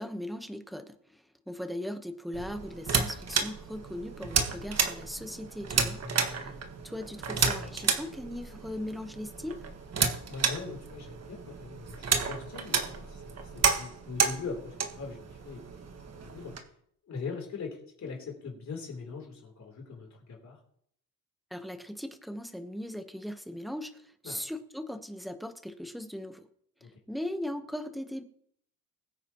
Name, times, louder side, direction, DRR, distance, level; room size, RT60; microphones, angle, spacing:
voice 1, 0.0-6.0 6.3-6.5 6.8-9.7 21.5-26.5 27.1-28.2, left 1 dB, ahead, 7 dB, 1.1 m, -39 dB
sound 1, 2.3-16.6, right 5 dB, 45° right, 1.5 m, -32 dB
voice 2, 6.0-6.5 10.3-15.8 16.1-16.5 17.1-20.6 24.2-24.4 26.8-26.9, left 4 dB, 50° left, 0 dB, 3.5 m, -41 dB
22.0 x 9.1 x 3.0 m, 0.69 s
cardioid pair, 105°, 35 cm